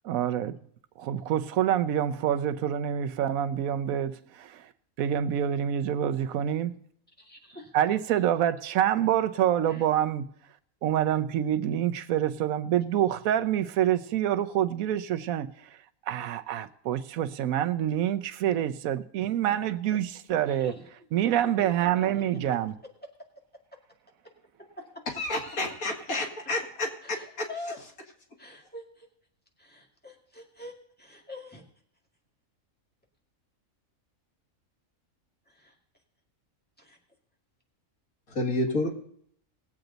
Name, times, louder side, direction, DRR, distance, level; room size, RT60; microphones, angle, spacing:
voice 1, 0.0-0.6 1.0-4.7 5.0-6.7 7.7-10.3 10.8-15.7 16.1-20.7 21.1-22.7, right 10 dB, 85° right, 1.1 m, -27 dB
voice 2, 7.2-7.7 9.7-9.9 20.5-20.8 21.6-21.7 22.0-22.1 24.8-24.9 27.0-27.8 28.4-29.1 29.6-30.7 31.0-31.6 35.5-35.8 36.8-37.0, left 2 dB, 5° left, 2.1 m, -44 dB
voice 3, 25.2-26.9 27.4-27.5 38.3-38.9, left 2 dB, 90° left, 2.5 m, -29 dB
19.5 x 8.0 x 3.9 m
omnidirectional pair, 1.4 m